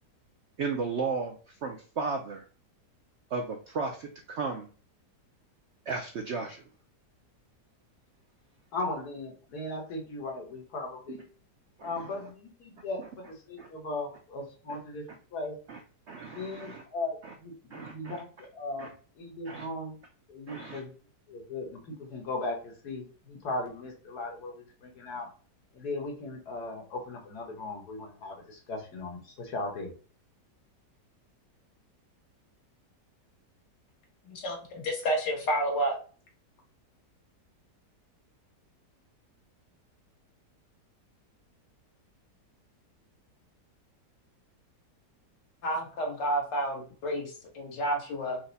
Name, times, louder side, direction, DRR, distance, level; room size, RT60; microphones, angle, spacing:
voice 1, 0.6-2.4 3.3-4.7 5.9-6.6 11.8-12.2 13.6-13.7 15.7-15.8 16.1-16.8 17.2-17.3 17.7-18.2 18.8-18.9 19.5-19.7 20.5-20.8, right 4 dB, 75° right, 3 dB, 0.6 m, -35 dB
voice 2, 8.7-11.2 11.8-15.0 15.3-15.6 16.3-20.0 20.3-20.9 21.3-25.3 25.7-29.9, left 2 dB, 65° left, 0 dB, 1.7 m, -37 dB
voice 3, 34.3-36.0 45.6-48.4, right 1 dB, 90° left, 0 dB, 2.0 m, -30 dB
4.6 x 2.1 x 3.9 m, 0.40 s
omnidirectional pair, 1.8 m